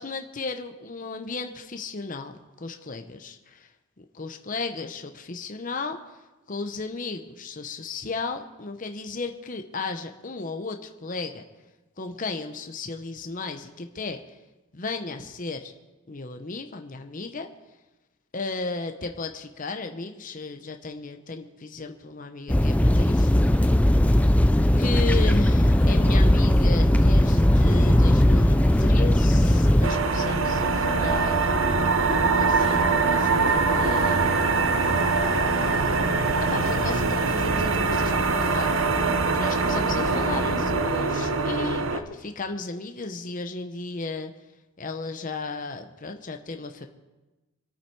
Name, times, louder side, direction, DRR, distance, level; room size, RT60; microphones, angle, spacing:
voice 1, 0.0-3.7 4.0-6.2 6.5-11.4 12.0-14.2 14.7-15.7 16.1-17.5 18.3-23.5 24.8-34.6 35.5-35.8 36.5-38.8 39.3-44.3 44.8-46.9, left 3 dB, 40° left, 6 dB, 0.8 m, -34 dB
sound 1, 22.5-29.9, left 1 dB, 5° left, 0.4 m, -18 dB
sound 2, 24.7-40.8, equal, 65° left, 3.0 m, -33 dB
sound 3, 29.8-42.0, right 4 dB, 70° right, 0.9 m, -23 dB
25.0 x 8.9 x 4.6 m, 1.1 s
head